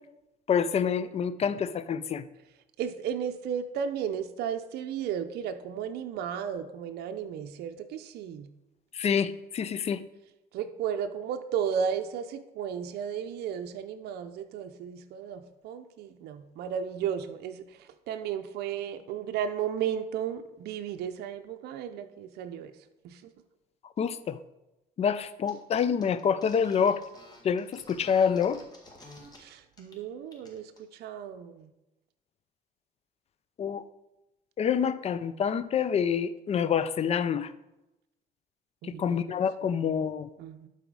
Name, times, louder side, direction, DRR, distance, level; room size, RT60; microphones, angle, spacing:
voice 1, 0.5-2.3 8.9-10.0 24.0-24.4 25.0-27.0 27.4-28.6 33.6-33.8 34.6-37.5 38.8-40.3, left 7 dB, 40° left, 14 dB, 0.5 m, -27 dB
voice 2, 2.8-8.5 10.5-22.8 23.0-23.3 29.3-31.7 38.8-39.2 39.6-39.9 40.4-40.7, right 8 dB, 75° right, 7 dB, 0.6 m, -34 dB
sound 1, 25.5-25.6 25.8-29.4 29.7-30.0 30.3-30.8, left 1 dB, 25° left, 2.0 m, -51 dB
12.0 x 4.2 x 4.7 m, 0.95 s
cardioid pair, 110°, 17 cm